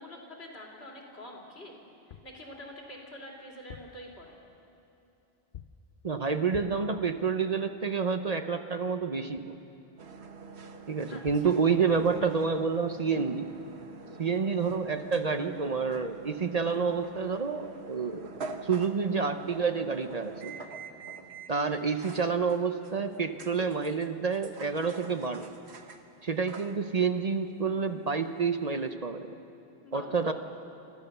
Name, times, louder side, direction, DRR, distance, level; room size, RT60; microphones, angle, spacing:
voice 1, 0.0-1.8 2.1-4.4 11.1-11.4 14.1-14.4 20.9-21.2 29.8-30.3, left 1 dB, 80° left, -2 dB, 3.4 m, -46 dB
sound 1, 1.9-2.4 3.5-4.1 5.5-5.9 6.5-6.9 11.0-11.1 11.3-11.6, left 9 dB, 60° left, 0.7 m, -47 dB
voice 2, 6.0-9.5 10.9-13.5 14.2-20.5 21.5-25.5 26.2-29.3 29.9-30.3, right 5 dB, 40° right, 7 dB, 0.8 m, -29 dB
sound 2, 10.0-28.9, right 4 dB, 90° right, 1.4 m, -46 dB
28.0 x 14.0 x 6.8 m, 3.0 s
omnidirectional pair, 1.1 m